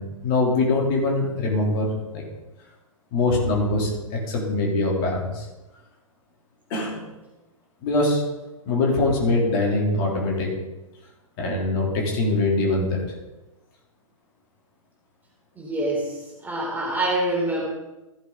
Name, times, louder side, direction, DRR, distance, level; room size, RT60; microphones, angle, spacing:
voice 1, 0.0-2.2 3.1-5.5 6.7-7.1 7.8-8.2 8.6-10.5 11.4-13.0, left 2 dB, 40° left, -2 dB, 3.2 m, -23 dB
voice 2, 15.6-16.2 16.4-17.7, right 1 dB, 10° right, -3 dB, 3.4 m, -25 dB
14.5 x 8.1 x 3.9 m, 1.0 s
figure-of-eight pair, 110°, 18 cm